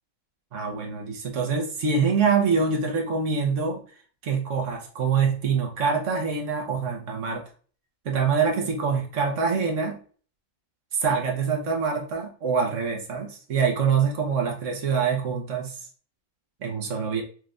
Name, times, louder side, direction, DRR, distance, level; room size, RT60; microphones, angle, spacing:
voice 1, 0.5-3.8 4.2-7.4 8.0-10.0 10.9-15.8 16.6-17.2, right 5 dB, 65° right, 1 dB, 1.3 m, -25 dB
4.4 x 3.2 x 2.5 m, 0.42 s
omnidirectional pair, 1.4 m